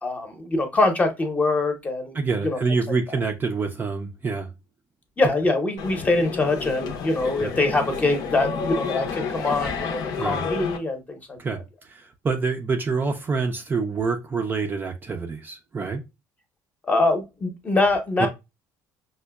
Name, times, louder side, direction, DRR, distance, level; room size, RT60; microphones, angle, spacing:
voice 1, 0.0-2.8 5.2-11.4 16.8-18.3, left 2 dB, 20° left, 0.8 m, -24 dB
voice 2, 2.1-4.5 7.4-7.5 10.2-10.4 11.4-11.6 11.9-16.0 18.2-18.3, right 4 dB, 25° right, 0.5 m, -26 dB
sound 1, 5.8-10.8, left 5 dB, 60° left, 0.6 m, -30 dB
5.2 x 2.2 x 2.2 m
cardioid pair, 110°, 8 cm